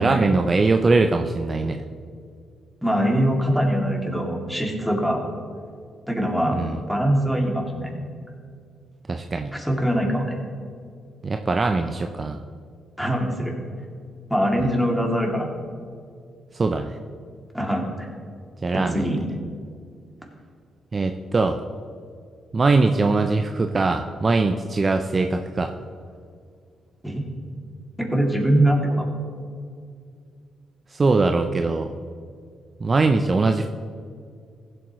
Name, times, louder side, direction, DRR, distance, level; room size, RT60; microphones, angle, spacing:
voice 1, 0.0-1.8 6.5-6.8 9.1-9.5 11.2-12.4 14.6-14.7 16.5-17.0 18.6-19.0 20.9-21.6 22.5-25.7 30.9-31.9 32.8-33.7, right 3 dB, 40° right, 6 dB, 0.5 m, -21 dB
voice 2, 2.8-5.2 6.1-6.6 6.9-7.9 9.5-10.4 13.0-13.6 14.3-15.5 17.5-18.1 18.7-19.2 27.0-27.2 28.0-29.1, right 1 dB, ahead, 0 dB, 2.6 m, -22 dB
15.5 x 7.8 x 3.1 m, 2.3 s
supercardioid pair, 55°, 0 cm